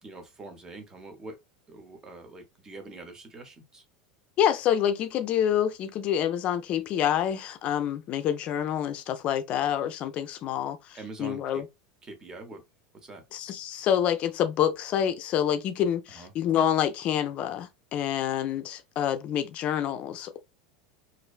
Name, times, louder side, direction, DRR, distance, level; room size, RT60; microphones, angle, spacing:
voice 1, 0.0-1.4 1.7-3.8 10.9-11.6 12.0-12.6 13.0-13.2 16.1-16.3, right 3 dB, 20° right, 0.7 m, -44 dB
voice 2, 4.4-11.6 13.3-20.4, left 10 dB, 40° left, 0.4 m, -27 dB
2.4 x 2.1 x 2.3 m
supercardioid pair, 135°, 3 cm